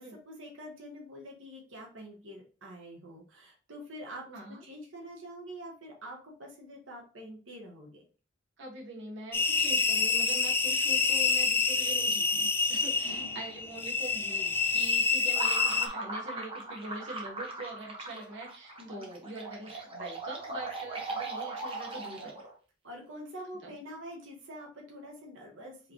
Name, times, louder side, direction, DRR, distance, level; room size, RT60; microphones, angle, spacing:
voice 1, 0.0-8.0 13.0-13.4 18.8-19.1 22.8-25.9, equal, 90° right, -1 dB, 1.3 m, -46 dB
voice 2, 4.3-4.6 8.6-22.4, right 2 dB, 65° right, -2 dB, 1.3 m, -43 dB
sound 1, 9.3-15.9, left 4 dB, 10° left, 0.4 m, -27 dB
sound 2, 15.3-22.5, right 2 dB, 30° right, 1.1 m, -39 dB
4.8 x 3.2 x 3.0 m, 0.37 s
head